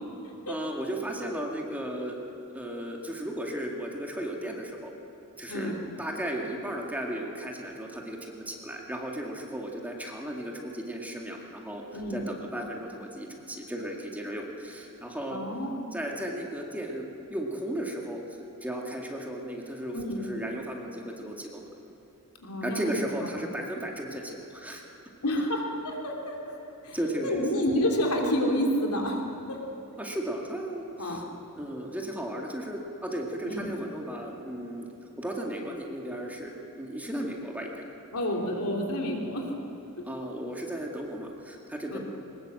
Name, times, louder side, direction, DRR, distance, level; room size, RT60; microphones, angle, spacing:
voice 1, 0.5-2.2 2.5-5.0 5.4-5.7 6.0-15.4 15.9-21.6 22.6-24.9 26.9-27.6 30.0-31.2 31.6-34.9 35.2-37.8 40.0-42.0, right 1 dB, 5° right, 0 dB, 2.1 m, -35 dB
voice 2, 11.9-12.2 15.3-15.8 19.9-20.3 22.4-22.9 25.2-26.6 26.8-29.2 29.5-29.6 31.0-31.2 33.5-33.7 38.1-39.5 41.9-42.0, equal, 80° left, 0 dB, 3.1 m, -29 dB
21.5 x 19.5 x 7.8 m, 2.9 s
head